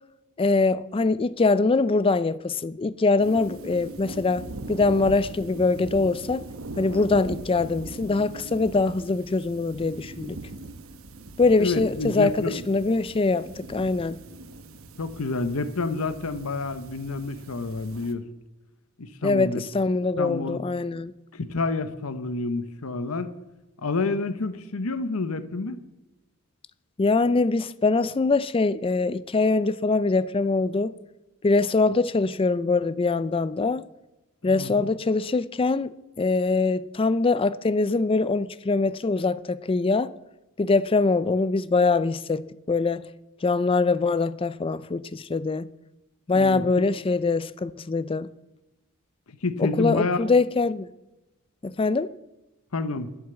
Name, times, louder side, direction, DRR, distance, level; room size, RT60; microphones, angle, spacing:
voice 1, 0.4-6.4 6.8-10.4 11.4-14.2 19.2-21.1 27.0-30.9 31.4-33.8 34.4-40.1 40.6-42.4 42.7-43.1 43.4-45.7 46.3-48.3 49.6-50.9 51.6-52.1, left 3 dB, 25° left, 0.4 m, -23 dB
sound 1, 3.2-18.1, right 2 dB, 65° right, 1.0 m, -41 dB
voice 2, 11.6-12.6 15.0-18.2 19.0-19.6 20.2-20.6 21.3-23.3 23.8-25.8 34.4-34.9 46.3-46.8 49.4-50.2 52.7-53.1, left 3 dB, 80° left, 0.9 m, -29 dB
12.0 x 7.2 x 7.9 m
head